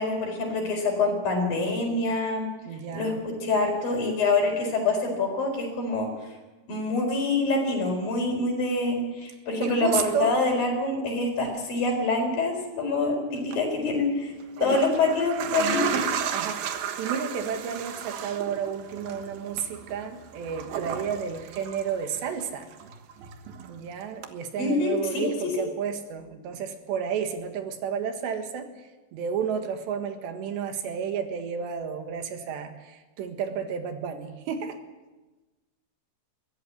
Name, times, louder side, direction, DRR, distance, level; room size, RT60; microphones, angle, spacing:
voice 1, 0.0-2.5 2.9-6.1 6.7-14.3 14.6-15.9 24.6-25.5, left 3 dB, 55° left, 2 dB, 6.1 m, -26 dB
voice 2, 2.7-3.2 9.6-10.3 15.6-16.0 16.3-22.7 23.7-28.7 29.1-34.8, right 7 dB, 85° right, 6 dB, 3.9 m, -32 dB
sound 1, 13.4-13.6 14.4-22.4 22.7-23.8 24.2-24.3, right 8 dB, 70° right, 3.0 m, -33 dB
22.0 x 16.0 x 8.5 m, 1.2 s
omnidirectional pair, 4.9 m